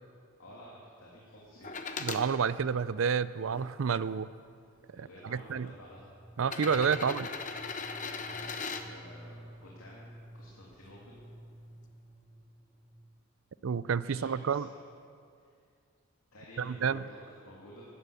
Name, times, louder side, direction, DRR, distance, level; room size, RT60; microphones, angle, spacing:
voice 1, 0.4-1.7 4.9-6.1 8.3-11.3 14.1-14.8 15.4-15.5 16.3-17.9, equal, 90° left, -5 dB, 3.0 m, -52 dB
sound 1, 1.6-2.2 3.0-4.0 5.0-5.1 6.4-8.8 10.7-10.8, left 4 dB, 35° left, 0.9 m, -38 dB
voice 2, 2.0-4.3 5.0-5.7 6.4-7.3 13.6-14.7 16.6-17.0, right 6 dB, 75° right, 16 dB, 0.4 m, -30 dB
sound 2, 5.5-13.3, equal, 15° left, 2.5 m, -52 dB
17.5 x 12.0 x 6.9 m, 2.3 s
head